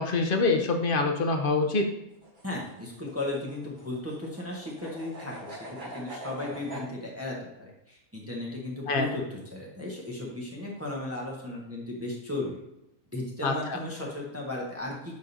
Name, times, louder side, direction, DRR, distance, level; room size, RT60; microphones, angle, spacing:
voice 1, 0.0-1.9 8.9-9.1 13.4-13.8, left 3 dB, 50° left, 4 dB, 0.7 m, -25 dB
sound 1, 2.1-6.9, right 1 dB, 35° right, 1.3 m, -43 dB
voice 2, 2.4-5.6 5.9-12.6 13.1-15.2, left 2 dB, 10° right, -3 dB, 1.0 m, -35 dB
10.5 x 3.7 x 2.7 m, 0.83 s
omnidirectional pair, 1.5 m